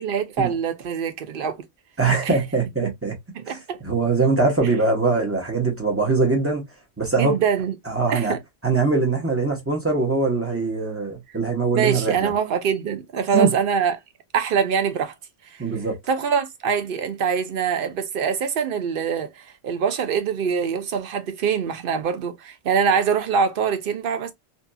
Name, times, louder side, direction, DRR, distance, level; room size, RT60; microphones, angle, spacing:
voice 1, 0.0-1.6 2.2-2.4 2.8-2.9 3.3-3.8 7.2-7.7 8.1-8.4 11.7-14.0 14.3-15.1 15.5-15.6 16.1-24.3, right 6 dB, 60° right, 0.7 m, -24 dB
voice 2, 2.0-3.1 3.5-3.6 3.8-6.6 7.0-7.4 7.9-8.4 8.6-12.3 13.3-13.5 15.6-16.0, right 3 dB, 15° right, 0.8 m, -22 dB
2.7 x 2.6 x 2.2 m
omnidirectional pair, 1.1 m